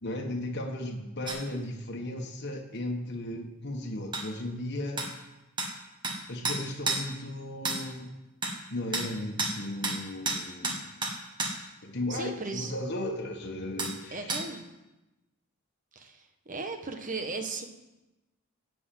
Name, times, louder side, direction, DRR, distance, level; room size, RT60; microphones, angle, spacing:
voice 1, 0.0-5.0 6.3-8.1 8.7-11.1 11.8-14.3, left 1 dB, 50° left, 1 dB, 1.5 m, -36 dB
sound 1, 1.3-1.4 4.1-4.3 5.0-5.1 5.6-5.7 6.0-6.2 6.4-7.0 7.6-7.8 8.4-8.6 8.9-9.1 9.4-9.6 9.8-10.0 10.3-11.5 13.8-13.9 14.3-14.4, right 2 dB, 20° right, 1.8 m, -30 dB
voice 2, 12.1-12.7 14.1-14.7 15.9-17.6, right 3 dB, 40° right, 6 dB, 1.3 m, -36 dB
17.0 x 6.2 x 7.6 m, 1.0 s
head